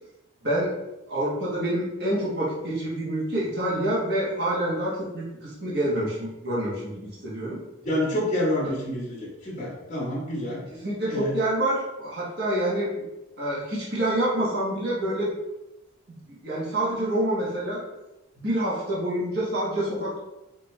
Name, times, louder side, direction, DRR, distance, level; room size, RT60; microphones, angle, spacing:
voice 1, 1.1-7.6 10.8-13.0 13.4-15.3 16.1-17.8 18.4-20.2, right 1 dB, 50° right, -7 dB, 1.4 m, -27 dB
voice 2, 7.8-10.6 11.1-11.3, left 1 dB, 30° left, -7 dB, 1.4 m, -28 dB
4.5 x 3.0 x 3.3 m, 0.95 s
head